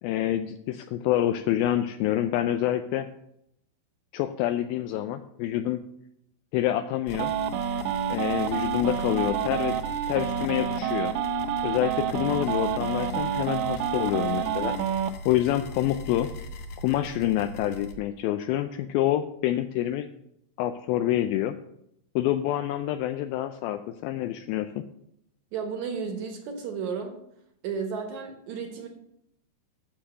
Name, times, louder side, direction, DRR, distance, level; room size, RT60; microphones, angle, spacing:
voice 1, 0.0-3.1 4.1-5.8 6.5-7.3 8.1-9.8 10.1-11.1 11.6-14.8 15.3-16.3 16.8-20.1 20.6-21.6 22.2-24.8, left 13 dB, 80° left, 8 dB, 2.2 m, -27 dB
sound 1, 7.1-17.9, equal, 65° left, 1.9 m, -39 dB
sound 2, 7.1-15.1, right 9 dB, 80° right, 2.6 m, -28 dB
voice 2, 25.5-27.2 27.6-28.9, right 6 dB, 65° right, 5 dB, 2.1 m, -33 dB
9.4 x 6.8 x 7.4 m, 0.78 s
omnidirectional pair, 4.5 m